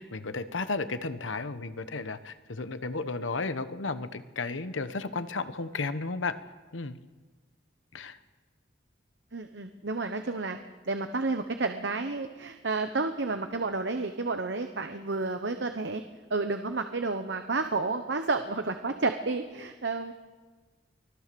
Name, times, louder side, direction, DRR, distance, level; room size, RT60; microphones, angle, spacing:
voice 1, 0.0-6.4 6.7-6.9 7.9-8.2, left 3 dB, 85° left, 12 dB, 1.0 m, -33 dB
voice 2, 9.3-10.6 10.9-16.0 16.3-20.1, right 3 dB, 65° right, 7 dB, 1.0 m, -31 dB
24.5 x 15.5 x 6.9 m, 1.4 s
head